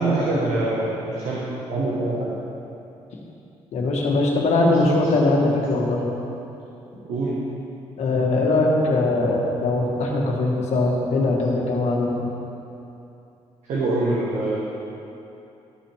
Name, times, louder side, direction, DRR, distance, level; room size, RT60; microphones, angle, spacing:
voice 1, 0.0-1.4 1.7-2.3 4.7-4.8 7.0-7.3 13.7-14.6, right 2 dB, 75° right, -7 dB, 1.5 m, -24 dB
voice 2, 3.7-6.0 8.0-12.2, left 2 dB, 70° left, -2 dB, 1.6 m, -21 dB
13.0 x 5.7 x 3.6 m, 2.8 s
cardioid pair, 85°, 12 cm